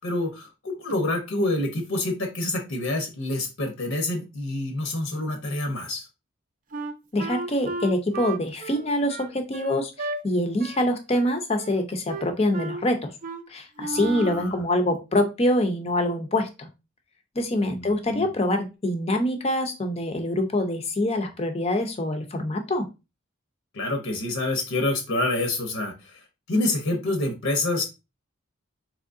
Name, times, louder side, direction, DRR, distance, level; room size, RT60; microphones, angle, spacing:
voice 1, 0.0-6.1 14.0-14.6 17.6-18.3 23.7-26.2 26.5-27.8, left 2 dB, 70° left, 4 dB, 0.8 m, -27 dB
Wind instrument woodwind instrument, 6.7-10.2 10.6-10.9 11.1-11.8 12.1-12.8 13.2-13.4 13.8-14.5, right 3 dB, 40° right, 0.4 m, -34 dB
voice 2, 7.1-13.1 13.5-16.7 17.4-22.9, left 1 dB, 30° left, 5 dB, 0.5 m, -25 dB
3.7 x 3.0 x 2.5 m, 0.27 s
head